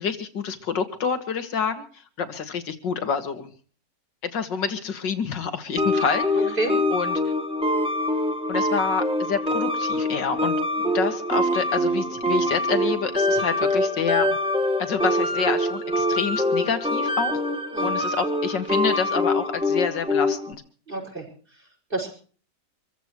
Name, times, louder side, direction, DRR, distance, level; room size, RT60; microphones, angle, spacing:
voice 1, 0.0-1.8 2.2-3.5 4.2-6.6 6.9-7.2 8.5-14.3 14.8-17.4 17.8-20.6, left 6 dB, 80° left, 9 dB, 2.5 m, -28 dB
sound 1, 5.8-20.5, left 1 dB, 5° right, 1.4 m, -24 dB
voice 2, 6.3-6.7 17.7-17.9 20.9-21.3 21.9-22.1, right 2 dB, 30° right, 1 dB, 6.2 m, -28 dB
26.5 x 15.0 x 3.1 m, 0.41 s
omnidirectional pair, 1.9 m